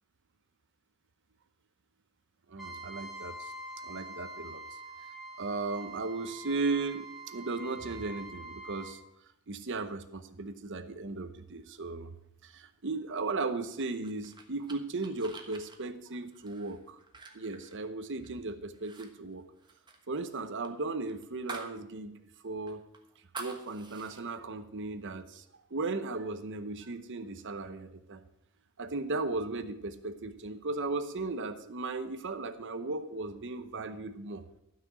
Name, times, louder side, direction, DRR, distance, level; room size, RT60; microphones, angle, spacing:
voice 1, 2.5-3.5 3.8-4.6 5.4-9.0 9.5-12.1 12.4-17.0 17.3-19.4 20.1-22.2 22.4-22.8 23.4-25.4 25.7-28.2 28.8-34.6, right 3 dB, 55° right, 10 dB, 0.9 m, -36 dB
Trumpet, 2.6-9.0, right 2 dB, ahead, 1.4 m, -45 dB
sound 1, 13.8-18.4 18.7-19.1 19.3-21.8 22.1-22.2 22.7-24.2, right 3 dB, 20° right, 1.2 m, -47 dB
12.0 x 6.0 x 7.4 m, 0.82 s
head